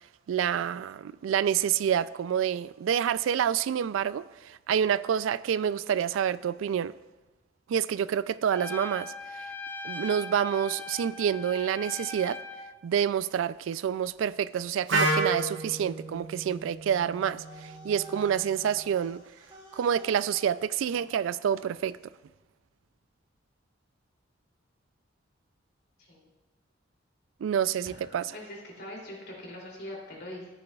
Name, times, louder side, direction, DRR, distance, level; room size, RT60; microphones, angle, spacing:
voice 1, 0.3-6.9 7.7-9.4 9.8-12.4 12.8-19.2 19.7-22.0 27.4-28.3, right 8 dB, 85° right, 17 dB, 0.3 m, -28 dB
Trumpet, 8.5-12.7, left 3 dB, 10° left, 0.4 m, -40 dB
Wind instrument woodwind instrument, 14.9-18.8, right 2 dB, 70° right, 1.2 m, -32 dB
sound 1, 17.2-21.9, right 1 dB, 25° right, 3.6 m, -51 dB
voice 2, 26.0-26.3 27.8-30.5, left 1 dB, 55° left, -2 dB, 2.9 m, -43 dB
13.5 x 9.8 x 2.3 m, 1.2 s
head